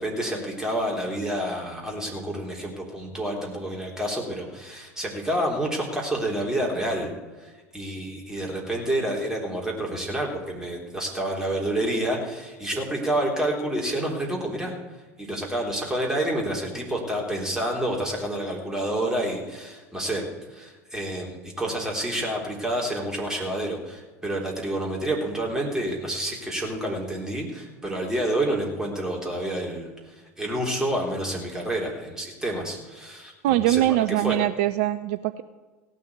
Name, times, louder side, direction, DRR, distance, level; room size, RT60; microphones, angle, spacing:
voice 1, 0.0-7.1 7.4-14.7 15.2-20.2 20.5-29.9 30.4-33.8 34.1-34.4, right 1 dB, 5° right, -1 dB, 3.6 m, -28 dB
voice 2, 33.4-35.4, right 14 dB, 55° right, 13 dB, 0.4 m, -22 dB
16.5 x 6.2 x 8.1 m, 1.3 s
figure-of-eight pair, 70°, 8 cm